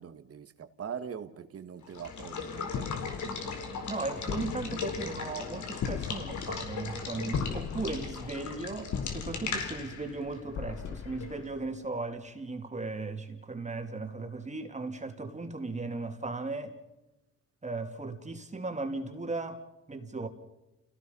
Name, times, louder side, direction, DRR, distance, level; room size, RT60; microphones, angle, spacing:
voice 1, 0.0-3.1 7.1-7.2, right 7 dB, 50° right, 2.0 m, -42 dB
Water / Water tap faucet / Liquid, 1.8-11.5, left 5 dB, 70° left, 4.6 m, -38 dB
sound 1, 2.7-12.0, left 7 dB, 50° left, 0.9 m, -39 dB
voice 2, 3.9-16.8 17.6-19.6 19.9-20.3, right 3 dB, 25° right, 3.0 m, -37 dB
30.0 x 17.5 x 5.6 m
cardioid pair, 90°, 30 cm